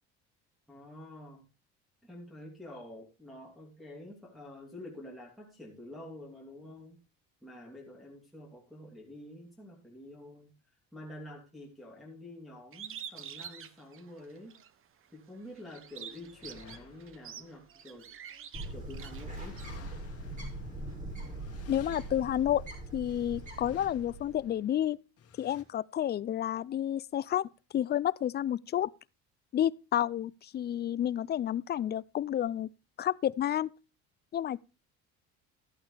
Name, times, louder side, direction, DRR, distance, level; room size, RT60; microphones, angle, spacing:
voice 1, 0.7-1.4 2.0-7.0 7.4-10.5 10.9-14.6 15.1-18.1 18.7-19.6, left 1 dB, ahead, 3.0 m, -48 dB
Bird, 12.7-14.7 15.2-19.7, right 9 dB, 45° right, 1.0 m, -46 dB
sound 1, 15.5-18.6 19.1-25.6, left 7 dB, 50° left, 1.8 m, -56 dB
Bird 2, 18.5-24.5, right 1 dB, 25° right, 5.4 m, -41 dB
voice 2, 21.7-22.6 22.9-25.0 25.4-28.9 29.5-32.7 33.0-33.7 34.3-34.6, left 11 dB, 35° left, 0.4 m, -30 dB
13.5 x 8.7 x 3.3 m
cardioid pair, 105°, 30 cm